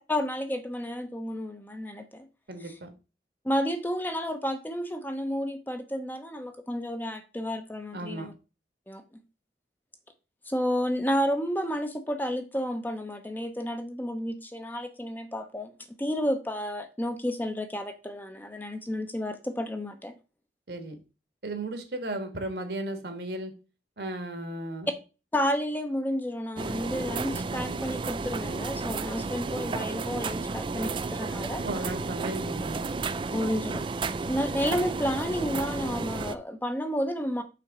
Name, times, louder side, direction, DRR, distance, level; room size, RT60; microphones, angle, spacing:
voice 1, 0.1-2.3 3.4-8.3 8.9-9.0 10.5-15.7 16.0-20.1 25.3-31.6 33.3-33.8 34.3-37.4, equal, 10° left, 0.7 m, -31 dB
voice 2, 2.5-2.9 7.9-8.3 20.7-21.0 21.4-23.5 24.0-24.9 31.6-32.9, right 1 dB, 70° right, 1.5 m, -35 dB
sound 1, 26.6-36.3, right 3 dB, 30° right, 0.3 m, -32 dB
5.9 x 3.8 x 5.9 m
head